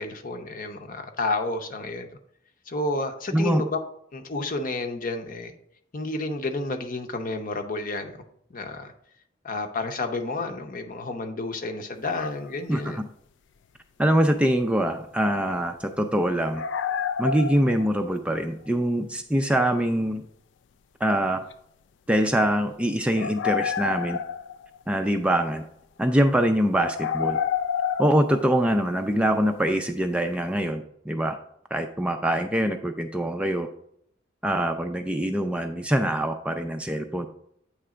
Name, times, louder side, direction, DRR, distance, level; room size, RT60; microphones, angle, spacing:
voice 1, 0.0-2.1 2.7-3.8 4.1-5.5 5.9-8.1 8.5-8.9 9.4-13.0, left 2 dB, 45° left, 5 dB, 0.7 m, -30 dB
voice 2, 3.3-3.6 12.7-13.0 14.0-16.6 17.2-20.2 21.0-21.4 22.1-24.2 24.9-25.6 26.0-27.4 28.0-31.4 31.7-33.7 34.4-37.3, right 1 dB, 5° right, 6 dB, 0.3 m, -24 dB
sound 1, 12.1-12.6 14.1-14.2 16.5-18.2 21.5-21.6 23.1-24.9 26.8-29.1, left 7 dB, 70° left, 0.3 m, -29 dB
8.5 x 3.3 x 4.9 m, 0.71 s
head